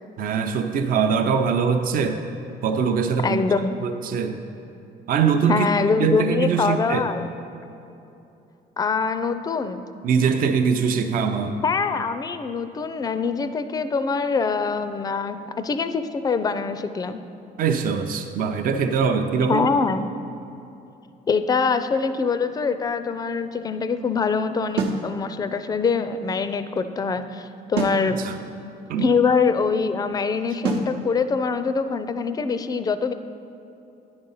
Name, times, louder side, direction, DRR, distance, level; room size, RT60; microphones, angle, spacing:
voice 1, 0.2-2.2 2.6-3.4 3.8-4.4 5.1-5.7 6.0-7.1 10.0-11.6 17.6-19.7 28.1-28.4 28.9-29.1, right 6 dB, 55° right, 6 dB, 0.6 m, -22 dB
voice 2, 3.2-3.8 5.5-7.2 8.8-9.9 11.6-17.2 19.5-20.1 21.3-28.2 29.0-33.1, left 5 dB, 20° left, 11 dB, 0.4 m, -24 dB
sound 1, 24.8-25.1 27.8-28.1 30.6-30.9, right 3 dB, 85° right, 0.9 m, -24 dB
9.6 x 5.2 x 5.5 m, 2.8 s
cardioid pair, 110°, 17 cm